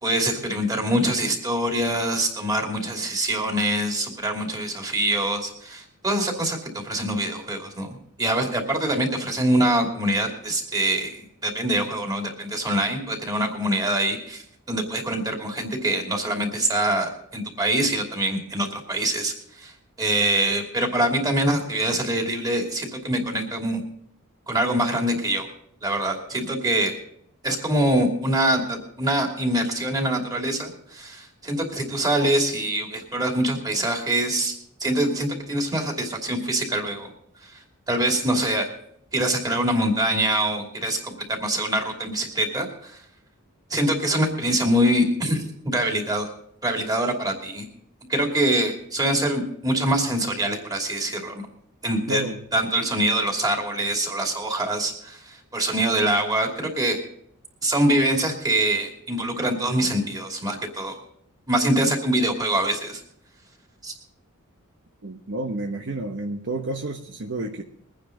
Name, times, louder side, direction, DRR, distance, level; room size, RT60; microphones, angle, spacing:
voice 1, 0.0-23.8 24.5-25.5 25.8-26.9 27.4-34.5 34.8-37.1 37.4-38.7 39.1-43.0 43.7-46.3 46.6-47.7 48.1-51.4 51.8-52.2 52.5-57.0 57.6-61.0 61.5-63.0 63.8-63.9, right 1 dB, 20° right, 1 dB, 2.7 m, -24 dB
voice 2, 52.1-52.4 65.0-67.6, right 1 dB, 55° right, 4 dB, 1.0 m, -30 dB
22.5 x 9.6 x 3.9 m, 0.67 s
head